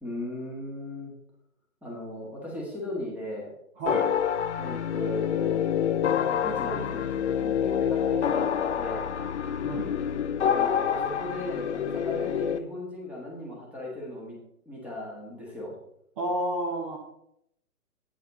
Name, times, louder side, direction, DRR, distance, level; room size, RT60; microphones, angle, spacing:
voice 1, 0.0-1.1 1.8-3.5 4.6-5.6 6.1-9.1 10.5-14.4 14.6-15.7, left 1 dB, 5° right, -3 dB, 1.5 m, -37 dB
voice 2, 3.8-4.1 9.6-9.9 16.2-17.0, right 1 dB, 20° right, -1 dB, 0.9 m, -30 dB
sound 1, 3.9-12.6, left 8 dB, 50° left, 0.5 m, -27 dB
8.6 x 7.3 x 4.1 m, 0.76 s
hypercardioid pair, 145°, 46 cm